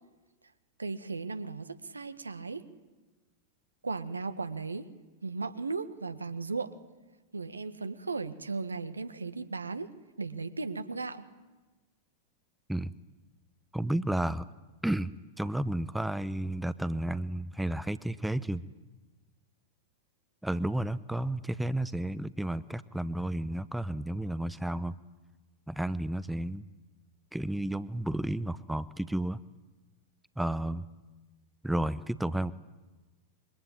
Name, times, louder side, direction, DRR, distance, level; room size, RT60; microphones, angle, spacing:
voice 1, 0.8-2.6 3.8-4.9 5.2-6.7 7.3-9.9 10.2-11.3, right 4 dB, 80° right, 11 dB, 1.7 m, -36 dB
voice 2, 13.7-14.5 14.8-15.1 15.4-18.6 20.4-24.9 25.7-26.6 27.3-29.4 30.4-30.9 31.6-32.5, right 1 dB, 5° right, 16 dB, 0.9 m, -32 dB
27.5 x 23.5 x 8.8 m, 1.2 s
figure-of-eight pair, 95°, 0 cm